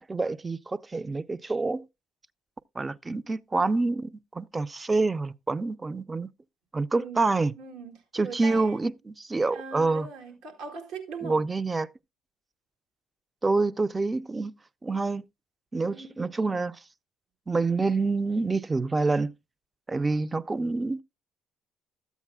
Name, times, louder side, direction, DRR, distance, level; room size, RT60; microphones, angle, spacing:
voice 1, 0.1-1.8 2.8-6.3 6.7-7.5 8.1-10.1 11.2-11.9 13.4-14.5 14.8-15.2 15.7-16.8 17.5-19.3 19.9-21.0, right 3 dB, 20° right, 0.4 m, -27 dB
voice 2, 7.6-8.9 9.5-11.5 15.8-16.2, right 5 dB, 75° right, 2.0 m, -40 dB
13.0 x 8.2 x 2.3 m
supercardioid pair, 85°, 0 cm